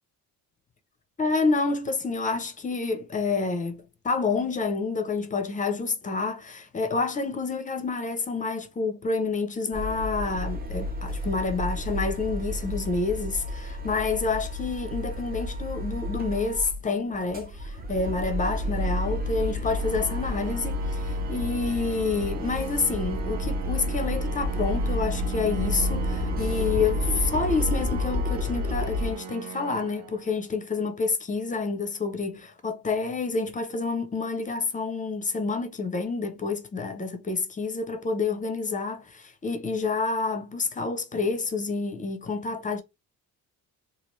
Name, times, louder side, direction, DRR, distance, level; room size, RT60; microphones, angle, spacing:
voice 1, 1.2-42.8, left 4 dB, 25° left, 0.5 m, -28 dB
sound 1, 9.7-16.8 17.1-29.1, left 1 dB, 25° right, 0.6 m, -30 dB
Organ, 19.7-30.7, right 9 dB, 80° right, 0.7 m, -40 dB
3.1 x 2.4 x 2.9 m
cardioid pair, 130°, 34 cm